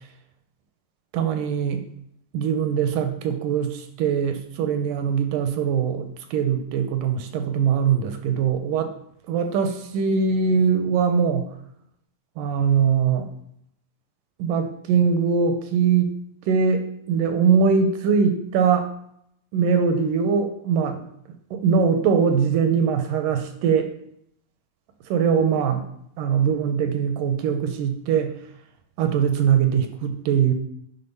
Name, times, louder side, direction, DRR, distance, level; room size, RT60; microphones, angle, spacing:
voice 1, 1.1-1.9 2.3-8.9 9.3-11.5 12.4-13.3 14.4-16.1 16.5-18.9 19.5-21.0 21.5-23.9 25.1-25.8 26.2-28.3 29.0-30.5, right 6 dB, 75° right, 7 dB, 2.2 m, -22 dB
9.9 x 4.2 x 5.5 m, 0.72 s
omnidirectional pair, 4.1 m